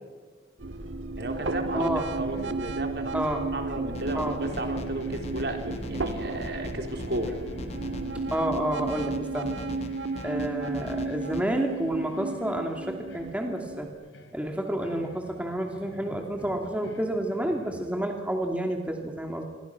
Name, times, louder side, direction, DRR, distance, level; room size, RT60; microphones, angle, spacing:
sound 1, 0.6-13.9, right 3 dB, 85° right, 1.7 m, -34 dB
voice 1, 1.2-1.9 2.1-3.2 3.5-7.4, right 1 dB, 60° right, 4 dB, 3.4 m, -34 dB
sound 2, 2.0-4.2 4.4-18.4, left 1 dB, 80° left, 3.3 m, -47 dB
voice 2, 3.1-3.4 4.1-4.4 8.3-9.5 10.2-13.9 14.3-19.4, right 1 dB, 5° right, 2 dB, 2.7 m, -29 dB
sound 3, 3.9-11.4, left 1 dB, 35° left, 1.7 m, -41 dB
28.0 x 23.0 x 6.1 m, 1.4 s
head